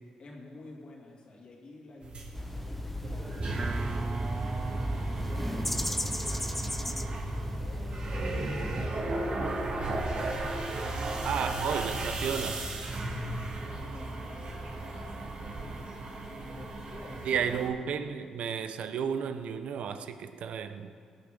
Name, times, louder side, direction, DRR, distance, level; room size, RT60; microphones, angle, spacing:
voice 1, 0.2-7.1 7.6-12.1 13.2-15.9 16.5-17.6, left 2 dB, 55° left, -2 dB, 2.6 m, -51 dB
sound 1, 2.0-17.7, right 2 dB, 55° right, 2.3 m, -36 dB
sound 2, 2.3-8.9, left 1 dB, 10° left, 0.6 m, -36 dB
sound 3, 3.4-15.9, right 3 dB, 30° right, 0.4 m, -39 dB
voice 2, 11.2-12.7 17.2-20.9, right 7 dB, 75° right, 10 dB, 0.7 m, -33 dB
19.0 x 9.0 x 3.9 m, 2.3 s
cardioid pair, 75°, 2 cm